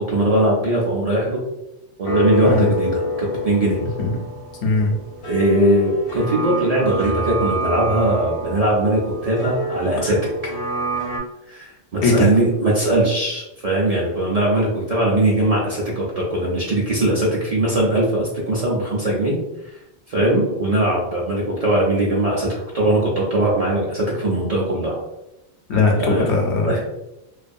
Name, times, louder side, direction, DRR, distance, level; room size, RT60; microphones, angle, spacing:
voice 1, 0.0-1.4 2.0-3.9 5.3-10.2 11.5-19.4 19.6-19.8 20.1-25.0 25.9-26.3 26.6-26.8, right 1 dB, 50° right, -4 dB, 0.5 m, -20 dB
sound 1, 2.0-11.2, equal, 40° left, 0.5 m, -27 dB
voice 2, 4.6-4.9 10.0-10.1 12.0-12.3 25.7-26.8, left 3 dB, 80° left, 1 dB, 0.9 m, -19 dB
2.4 x 2.2 x 2.5 m, 0.90 s
omnidirectional pair, 1.1 m